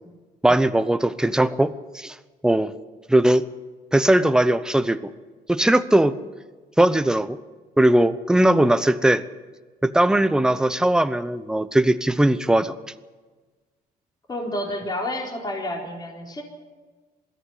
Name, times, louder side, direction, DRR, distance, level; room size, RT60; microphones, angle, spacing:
voice 1, 0.4-2.1 2.4-2.7 3.1-3.4 3.9-5.0 5.5-6.2 6.8-7.4 7.8-9.2 9.8-12.7, right 1 dB, 5° right, 12 dB, 0.8 m, -19 dB
voice 2, 14.3-16.4, left 1 dB, 25° left, 0 dB, 4.1 m, -29 dB
21.5 x 14.5 x 8.3 m, 1.3 s
cardioid pair, 110°, 17 cm